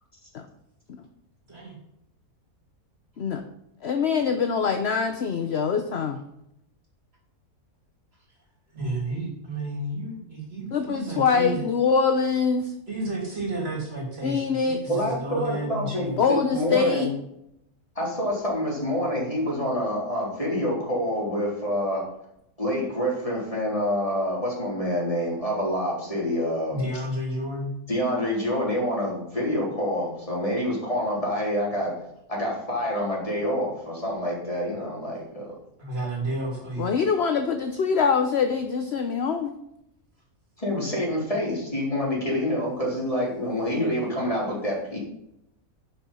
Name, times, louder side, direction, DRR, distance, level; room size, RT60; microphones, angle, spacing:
voice 1, 3.8-6.2 10.7-12.7 14.2-14.8 16.2-17.1 36.8-39.5, left 5 dB, 50° left, 7 dB, 0.9 m, -24 dB
voice 2, 8.7-11.7 12.9-16.2 26.7-27.7 35.8-36.9, right 1 dB, 40° right, -1 dB, 3.2 m, -31 dB
voice 3, 14.9-17.1 18.0-22.1 22.6-26.8 27.9-32.0 32.3-35.6 40.6-45.0, equal, 20° left, -5 dB, 4.0 m, -27 dB
11.0 x 6.9 x 5.6 m, 0.80 s
omnidirectional pair, 1.6 m